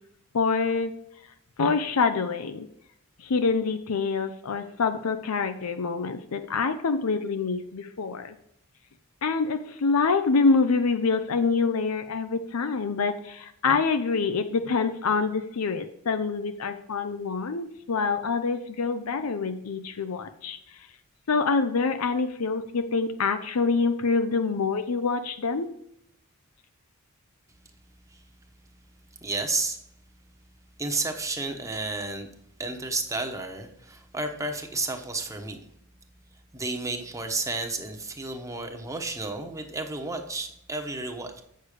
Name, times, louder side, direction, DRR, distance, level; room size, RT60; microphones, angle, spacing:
voice 1, 0.3-0.9 1.6-2.7 3.2-8.3 9.2-20.6 21.3-25.7, left 4 dB, 85° left, 9 dB, 0.6 m, -26 dB
voice 2, 29.2-29.8 30.8-32.3 32.6-35.6 36.5-41.4, right 3 dB, 15° right, 5 dB, 1.0 m, -31 dB
8.2 x 6.6 x 4.9 m, 0.76 s
head